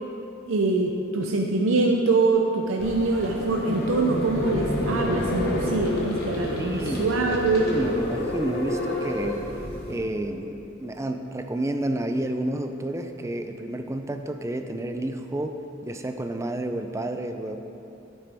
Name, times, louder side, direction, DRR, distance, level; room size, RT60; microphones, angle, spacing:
voice 1, 0.5-7.7, right 3 dB, 80° right, 1 dB, 0.6 m, -24 dB
sound 1, 2.8-10.0, left 1 dB, 55° left, 1.3 m, -29 dB
voice 2, 6.6-9.5 9.9-15.5 15.8-17.6, right 1 dB, 15° right, 6 dB, 0.4 m, -30 dB
8.9 x 8.8 x 3.4 m, 2.9 s
head